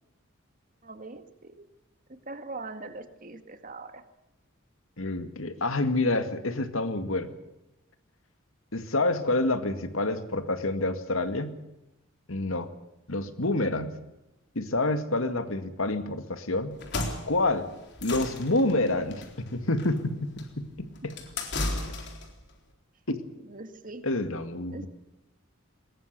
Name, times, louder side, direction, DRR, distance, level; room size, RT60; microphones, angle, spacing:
voice 1, 0.8-1.2 2.3-4.0 23.5-24.0 24.7-24.9, right 3 dB, 40° right, 8 dB, 2.0 m, -41 dB
voice 2, 5.0-7.3 8.7-11.6 12.3-12.7 13.1-14.0 14.6-16.8 17.3-17.7 18.0-21.2 23.1-23.2 24.0-24.9, left 2 dB, 85° left, 9 dB, 2.1 m, -28 dB
sound 1, 16.7-22.4, left 2 dB, 55° left, 3.9 m, -35 dB
22.0 x 20.5 x 6.8 m, 0.94 s
head